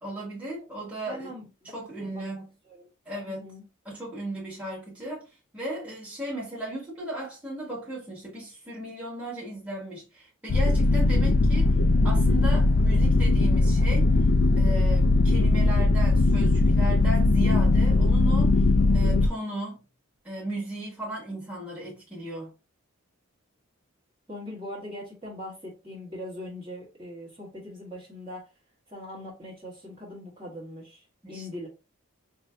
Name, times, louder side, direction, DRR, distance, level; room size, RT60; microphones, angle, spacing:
voice 1, 0.0-1.3 1.7-2.5 3.0-3.5 3.8-5.2 5.5-11.7 12.0-14.1 14.6-18.6 18.9-19.8 20.2-22.5 31.2-31.5, right 1 dB, 5° right, 1.5 m, -36 dB
voice 2, 1.1-2.9 3.2-3.6 24.3-28.4 28.9-31.7, left 1 dB, 20° right, 1.4 m, -41 dB
sound 1, 10.5-19.3, left 2 dB, 55° left, 0.4 m, -20 dB
5.2 x 2.7 x 2.2 m
head